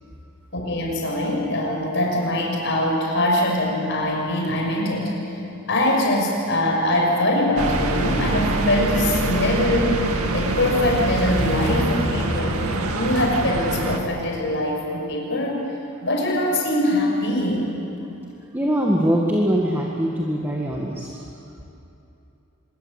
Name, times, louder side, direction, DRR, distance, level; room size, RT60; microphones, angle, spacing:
voice 1, 0.5-5.1 5.7-10.0 10.3-12.6 13.0-15.6 16.0-17.6, left 1 dB, 55° left, -1 dB, 6.2 m, -22 dB
sound 1, 7.6-14.0, right 2 dB, 85° right, 2.2 m, -24 dB
voice 2, 18.5-21.2, equal, 10° right, -2 dB, 1.8 m, -22 dB
25.0 x 22.0 x 8.2 m, 2.8 s
head